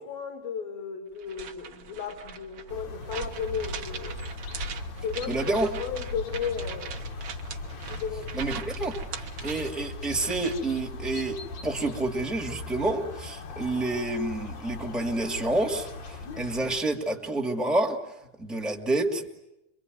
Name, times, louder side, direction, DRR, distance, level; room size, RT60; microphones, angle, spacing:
voice 1, 0.1-4.2 5.0-7.0 7.9-8.3, left 7 dB, 70° left, 5 dB, 4.1 m, -34 dB
sound 1, 1.2-10.7, right 8 dB, 60° right, 1.6 m, -41 dB
sound 2, 2.7-16.8, left 3 dB, 55° left, 2.5 m, -39 dB
voice 2, 5.3-5.7 8.3-9.0 9.4-19.3, right 2 dB, ahead, 2 dB, 1.3 m, -29 dB
27.0 x 23.5 x 9.4 m, 0.88 s
omnidirectional pair, 4.4 m